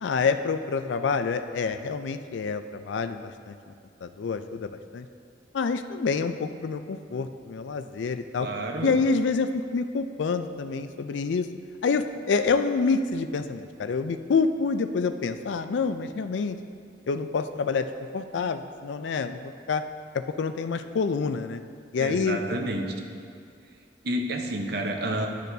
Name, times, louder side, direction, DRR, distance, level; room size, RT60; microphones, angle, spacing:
voice 1, 0.0-3.6 4.0-5.1 5.5-8.5 8.8-11.5 11.8-16.6 17.1-17.9 18.1-19.8 20.1-21.6 21.9-22.4, left 4 dB, 75° left, 9 dB, 0.4 m, -27 dB
voice 2, 8.4-9.0 22.0-22.9 24.0-25.3, right 1 dB, 60° right, 3 dB, 0.8 m, -29 dB
12.0 x 6.6 x 2.7 m, 2.4 s
head